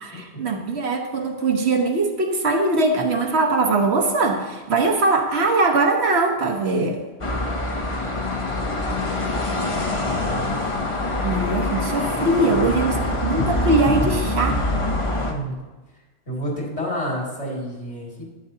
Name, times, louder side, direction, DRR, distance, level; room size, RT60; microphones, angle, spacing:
voice 1, 0.0-7.0 11.2-14.6, right 3 dB, 75° right, 3 dB, 1.4 m, -21 dB
sound 1, 7.2-15.3, left 2 dB, 30° left, 0.9 m, -24 dB
voice 2, 10.0-10.6 12.1-12.2 12.5-12.9 15.3-15.6 16.3-18.2, equal, 90° left, -3 dB, 2.8 m, -30 dB
11.0 x 9.0 x 2.8 m, 1.2 s
omnidirectional pair, 1.1 m